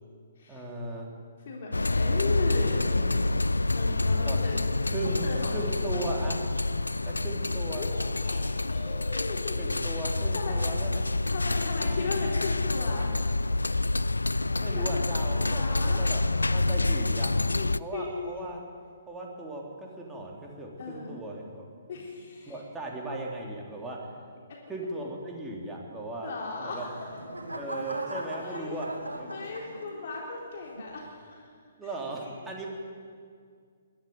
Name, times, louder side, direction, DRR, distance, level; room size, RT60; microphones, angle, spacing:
voice 1, 0.5-1.1 4.2-4.4 4.9-5.3 5.5-6.4 7.1-7.9 9.5-11.1 14.5-17.3 17.8-18.6 19.1-21.6 22.5-24.1 24.7-26.3 26.6-26.8 27.5-29.3 31.8-32.7, right 2 dB, 10° right, -2 dB, 3.6 m, -37 dB
voice 2, 1.5-3.2 3.7-4.6 5.0-6.1 7.8-9.5 9.9-10.9 11.3-13.2 14.7-14.9 15.4-16.1 17.2-18.2 20.8-21.2 21.9-22.6 26.2-27.0 28.4-28.8 29.3-31.5 32.2-32.4, left 4 dB, 50° left, -2 dB, 3.8 m, -37 dB
sound 1, 1.7-17.8, left 2 dB, 80° left, 0.4 m, -27 dB
sound 2, 26.6-30.2 30.8-31.1, right 1 dB, 80° right, 2.7 m, -39 dB
21.5 x 12.5 x 9.7 m, 2.1 s
figure-of-eight pair, 130°, 0 cm